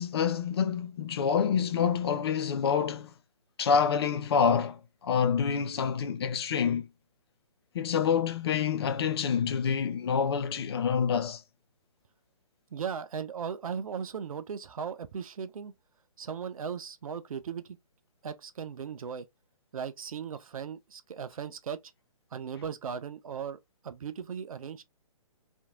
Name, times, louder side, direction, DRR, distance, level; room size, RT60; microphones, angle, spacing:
voice 1, 0.0-3.1 3.6-6.9 7.7-11.4, left 7 dB, 45° left, 0.4 m, -27 dB
voice 2, 12.7-15.7 16.2-17.8 18.2-19.3 19.7-21.8 22.3-24.8, right 7 dB, 65° right, 0.5 m, -37 dB
2.7 x 2.6 x 2.4 m
figure-of-eight pair, 140°, 19 cm